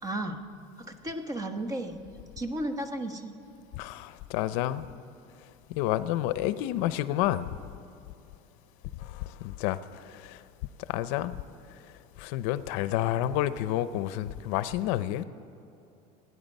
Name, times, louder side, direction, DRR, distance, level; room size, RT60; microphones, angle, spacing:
voice 1, 0.0-0.4 0.8-2.0 2.4-3.3, right 1 dB, 20° right, 6 dB, 1.1 m, -34 dB
voice 2, 3.7-4.9 5.7-7.5 9.0-10.4 10.9-11.4 12.2-15.2, left 13 dB, 75° left, 14 dB, 0.6 m, -30 dB
27.5 x 9.7 x 5.4 m, 2.8 s
cardioid pair, 150°, 17 cm